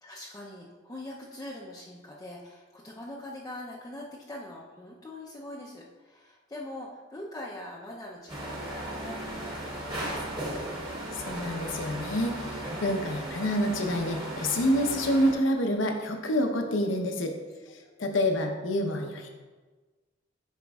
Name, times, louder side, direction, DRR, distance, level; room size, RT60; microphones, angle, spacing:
voice 1, 0.0-10.5 17.8-17.9, left 1 dB, 20° left, -4 dB, 0.6 m, -43 dB
sound 1, 8.3-15.3, right 1 dB, 25° right, 1.3 m, -36 dB
voice 2, 11.2-12.4 12.8-17.3 18.0-19.3, left 1 dB, 75° left, 4 dB, 0.8 m, -27 dB
9.1 x 5.2 x 2.3 m, 1.3 s
head